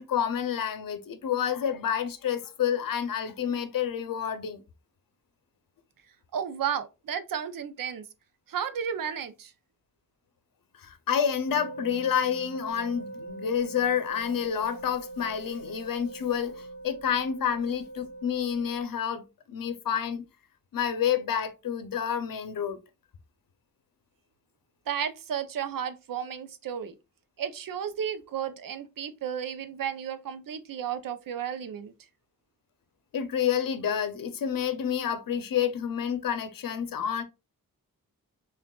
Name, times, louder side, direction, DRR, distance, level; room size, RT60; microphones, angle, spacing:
voice 1, 0.0-4.6 10.8-19.2 19.5-20.3 20.7-22.8 33.1-37.2, left 8 dB, 75° left, 0.7 m, -29 dB
voice 2, 6.3-8.1 8.5-9.5 24.9-26.9 27.4-31.9, right 8 dB, 75° right, 0.6 m, -33 dB
sound 1, 11.5-18.8, right 2 dB, 30° left, 1.0 m, -42 dB
5.9 x 2.4 x 2.3 m
wide cardioid pair, 160°, 34 cm